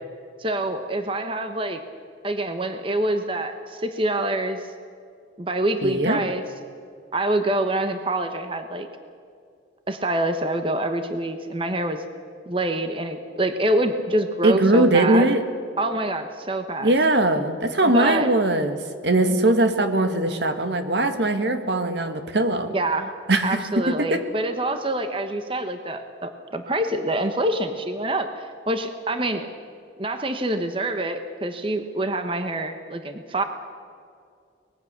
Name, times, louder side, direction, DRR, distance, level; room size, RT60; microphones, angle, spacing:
voice 1, 0.4-1.8 2.2-4.7 5.4-6.4 7.1-8.9 9.9-12.0 12.5-15.3 15.8-16.9 17.9-18.3 19.3-19.4 22.7-23.1 23.4-29.5 30.0-33.4, right 1 dB, 30° right, 7 dB, 1.0 m, -26 dB
voice 2, 5.8-6.2 14.4-15.4 16.8-18.8 19.0-22.7 23.3-24.2, right 2 dB, 70° right, 8 dB, 1.7 m, -20 dB
24.0 x 20.0 x 6.8 m, 2.3 s
head